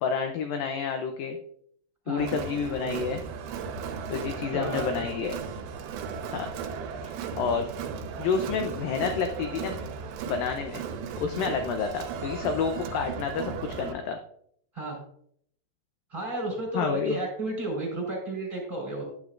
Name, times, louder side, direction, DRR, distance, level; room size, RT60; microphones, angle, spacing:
voice 1, 0.0-1.4 2.1-3.2 4.1-5.3 6.3-6.5 7.0-7.7 8.2-9.8 10.3-10.8 11.2-14.2 16.7-17.2, left 6 dB, 80° left, 5 dB, 2.1 m, -29 dB
Crowd, 2.2-13.9, right 6 dB, 85° right, 3.1 m, -36 dB
voice 2, 4.5-5.1 11.3-11.6 14.7-15.0 16.1-19.1, right 2 dB, 10° right, -2 dB, 4.2 m, -32 dB
12.0 x 9.6 x 2.5 m, 0.66 s
omnidirectional pair, 4.9 m